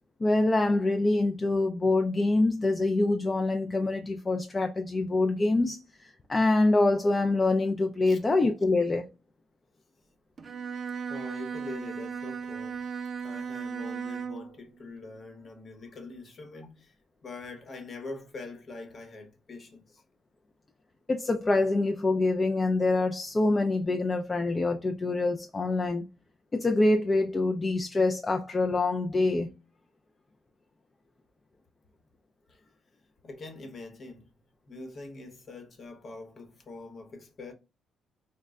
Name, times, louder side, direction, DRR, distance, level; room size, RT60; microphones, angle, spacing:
voice 1, 0.2-9.1 21.1-26.1 26.5-29.5, left 2 dB, 25° left, 0.3 m, -25 dB
Bowed string instrument, 10.4-14.6, right 6 dB, 40° right, 0.4 m, -36 dB
voice 2, 11.1-12.8 13.2-16.9 17.2-20.0 32.5-32.6 33.2-34.3 34.7-37.5, left 3 dB, 45° left, 0.9 m, -44 dB
4.0 x 2.2 x 2.3 m
cardioid pair, 90°, 0 cm